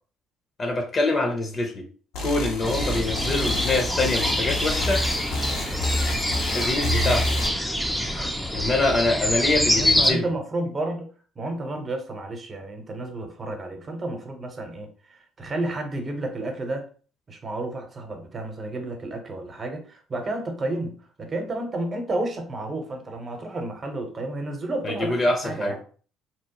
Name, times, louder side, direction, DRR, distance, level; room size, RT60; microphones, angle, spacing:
voice 1, 0.6-1.9 2.2-5.0 6.5-7.4 8.5-10.3 24.8-25.8, left 2 dB, 40° left, 4 dB, 0.7 m, -25 dB
sound 1, 2.1-7.5, left 1 dB, 75° left, 0.7 m, -28 dB
sound 2, 2.6-10.1, equal, ahead, 0.5 m, -25 dB
voice 2, 9.4-11.1 11.4-16.8 17.3-25.8, right 2 dB, 35° right, 4 dB, 0.9 m, -31 dB
2.9 x 2.1 x 2.9 m, 0.40 s
hypercardioid pair, 65°, 0 cm